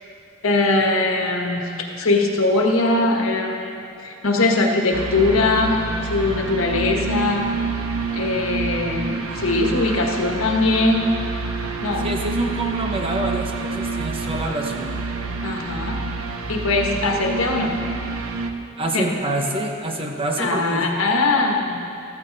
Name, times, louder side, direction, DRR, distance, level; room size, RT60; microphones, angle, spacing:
voice 1, 0.4-1.7 2.0-7.5 8.1-11.1 11.8-12.1 15.4-16.0 16.5-17.7 18.9-19.2 20.4-21.9, left 2 dB, 80° left, 1 dB, 1.5 m, -21 dB
sound 1, 4.9-18.5, right 3 dB, 90° right, 0.9 m, -28 dB
voice 2, 12.0-15.0 18.8-20.9, right 1 dB, 25° right, 2 dB, 1.0 m, -26 dB
14.0 x 14.0 x 4.1 m, 2.6 s
head